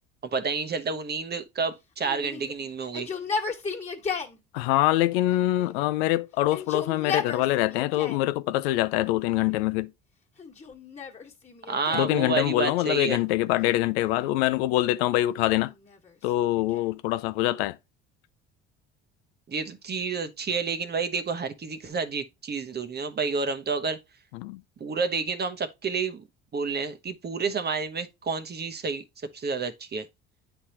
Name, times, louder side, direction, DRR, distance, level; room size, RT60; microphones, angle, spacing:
voice 1, 0.3-3.1 11.7-13.2 19.5-24.0 24.8-26.2 26.5-29.0 29.3-30.1, right 5 dB, 35° right, 0.9 m, -30 dB
Yell, 2.0-4.4 5.3-6.0 6.4-8.3 9.0-9.7 10.4-12.2 13.6-14.4 15.3-17.0, left 5 dB, 20° left, 1.6 m, -36 dB
voice 2, 4.5-9.9 11.9-15.7 16.2-17.8 24.3-24.6, left 16 dB, 80° left, 0.5 m, -24 dB
9.8 x 3.5 x 2.8 m
hypercardioid pair, 70°, 31 cm